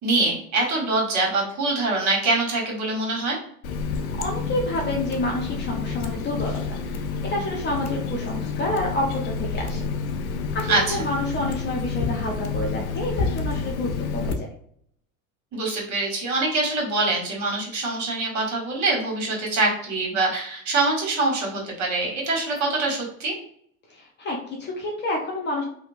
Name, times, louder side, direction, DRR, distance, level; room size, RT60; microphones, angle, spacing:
voice 1, 0.0-3.4 10.7-11.0 15.5-23.3, right 3 dB, 40° right, -2 dB, 1.4 m, -24 dB
Water tap faucet, 3.6-14.3, left 5 dB, 80° left, 0.5 m, -29 dB
voice 2, 3.8-9.8 10.5-14.5 23.9-25.6, left 1 dB, 25° left, 0 dB, 0.5 m, -29 dB
2.8 x 2.1 x 2.5 m, 0.65 s
hypercardioid pair, 90°, 43 cm